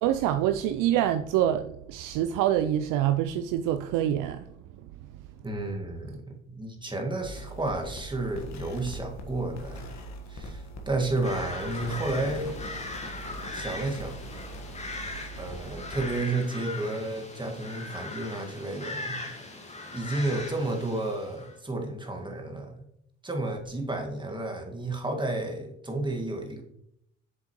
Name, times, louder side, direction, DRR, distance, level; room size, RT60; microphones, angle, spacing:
voice 1, 0.0-4.5, right 11 dB, 55° right, 0.5 m, -26 dB
voice 2, 5.4-12.6 13.5-14.2 15.3-19.6 19.9-22.8 23.2-26.6, right 2 dB, 10° right, 1.8 m, -32 dB
sound 1, 7.2-16.0, equal, 45° left, 1.5 m, -41 dB
sound 2, 11.2-21.5, left 2 dB, 15° left, 1.7 m, -40 dB
8.1 x 6.9 x 3.0 m
hypercardioid pair, 55°, 39 cm